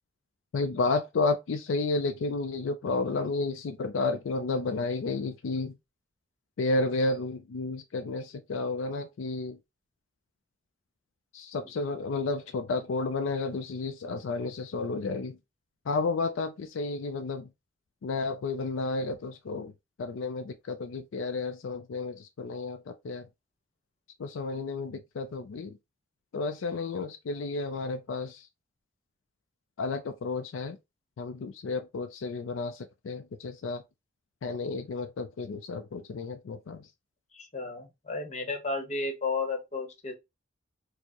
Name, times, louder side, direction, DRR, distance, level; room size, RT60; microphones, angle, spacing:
voice 1, 0.5-5.8 6.6-9.6 11.3-15.4 15.9-17.5 18.0-19.7 20.0-23.3 24.2-25.8 26.3-28.5 29.8-30.8 31.2-33.8 34.4-36.9, left 3 dB, 80° left, 0.4 m, -32 dB
voice 2, 37.3-40.1, left 3 dB, 35° left, 0.9 m, -33 dB
4.4 x 2.0 x 2.8 m
head